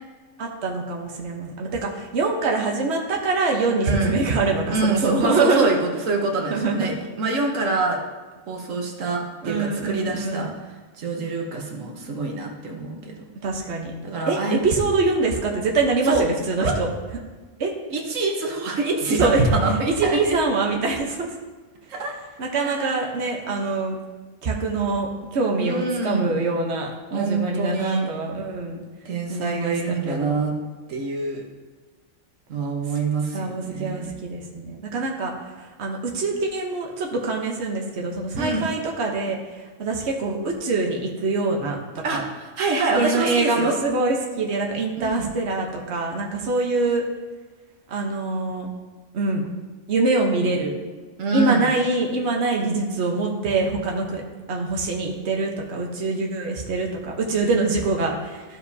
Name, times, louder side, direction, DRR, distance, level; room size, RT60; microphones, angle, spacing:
voice 1, 0.4-5.8 6.5-6.9 9.4-10.5 13.4-13.9 14.3-16.9 17.6-17.7 19.2-19.5 20.0-21.3 22.4-24.0 24.4-28.8 29.3-29.7 30.1-30.4 33.3-35.3 35.8-39.4 39.8-42.2 42.9-47.0 47.9-48.7 49.1-49.5 49.9-50.8 51.3-54.2 54.5-58.4, right 3 dB, 60° right, 0 dB, 1.3 m, -24 dB
voice 2, 3.8-4.2 4.7-8.0 8.5-10.5 11.0-13.1 14.0-14.6 16.0-16.3 16.6-16.8 17.9-20.4 21.9-22.1 22.6-23.0 25.6-26.4 27.1-28.1 29.0-30.6 30.9-31.4 32.5-34.1 38.4-38.7 42.0-43.7 45.0-45.3 51.2-51.7, right 3 dB, 85° right, 1 dB, 1.4 m, -26 dB
13.5 x 4.9 x 2.7 m, 1.3 s
omnidirectional pair, 1.3 m